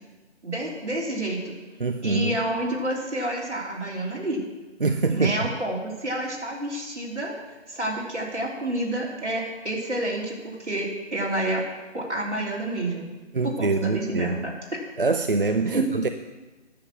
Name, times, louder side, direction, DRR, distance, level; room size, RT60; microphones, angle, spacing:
voice 1, 0.4-1.6 2.0-4.4 5.1-7.3 7.7-11.6 11.9-13.1 13.4-14.5 15.7-16.0, right 1 dB, 70° right, -3 dB, 3.4 m, -29 dB
voice 2, 1.8-2.4 4.8-5.5 13.3-14.4 15.0-16.1, right 3 dB, 50° right, 8 dB, 0.5 m, -24 dB
10.0 x 7.6 x 6.2 m, 1.2 s
figure-of-eight pair, 155°, 36 cm